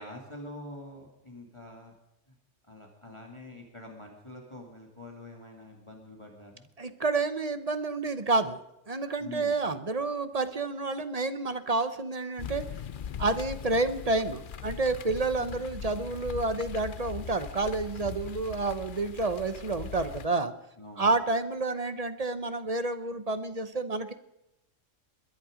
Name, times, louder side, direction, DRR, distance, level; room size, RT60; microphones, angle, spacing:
voice 1, 0.0-1.9 2.7-6.7 9.2-9.8 15.4-15.6 20.8-21.1, left 1 dB, 25° left, 0 dB, 2.2 m, -45 dB
voice 2, 6.8-8.6 8.9-12.6 13.2-20.5 21.0-24.1, right 3 dB, 35° right, 11 dB, 0.9 m, -29 dB
sound 1, 12.4-20.3, left 8 dB, 50° left, 0.7 m, -40 dB
21.5 x 11.0 x 5.1 m, 0.88 s
omnidirectional pair, 1.3 m